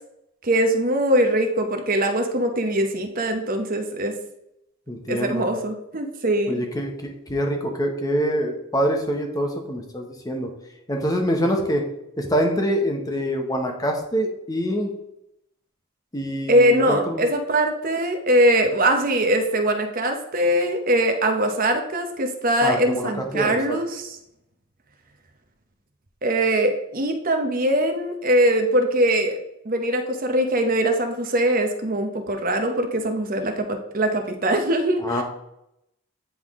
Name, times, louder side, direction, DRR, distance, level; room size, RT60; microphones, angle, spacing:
voice 1, 0.4-4.1 5.1-6.6 16.5-24.2 26.2-29.4 29.6-35.2, right 1 dB, 40° right, 5 dB, 0.8 m, -22 dB
voice 2, 4.9-5.5 6.5-10.5 10.9-11.8 12.2-14.9 16.1-17.2 22.6-23.6 35.0-35.2, equal, 15° left, 2 dB, 0.9 m, -25 dB
9.5 x 3.6 x 3.6 m, 0.81 s
head